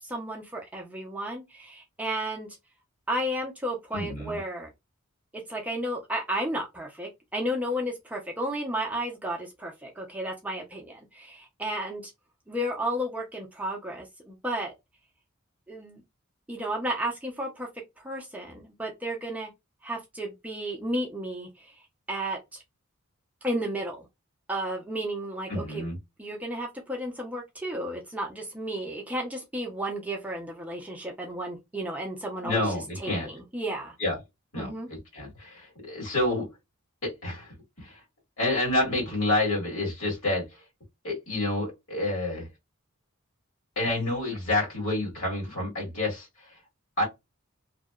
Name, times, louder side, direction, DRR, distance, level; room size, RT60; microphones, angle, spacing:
voice 1, 0.0-2.5 3.1-4.7 5.5-12.1 12.5-14.7 15.7-16.0 16.5-17.7 18.0-19.5 19.8-21.7 22.1-22.6 23.4-24.1 24.5-25.8 26.2-32.7 33.0-34.0 34.5-34.9, right 1 dB, 5° right, 0.4 m, -33 dB
voice 2, 3.9-4.4 25.5-26.0 32.4-33.3 34.0-34.1 34.5-36.5 37.0-37.5 37.8-38.0 38.4-40.4 41.0-42.5 43.7-46.3 47.0-47.1, left 2 dB, 65° left, 1.6 m, -28 dB
2.7 x 2.0 x 2.2 m
head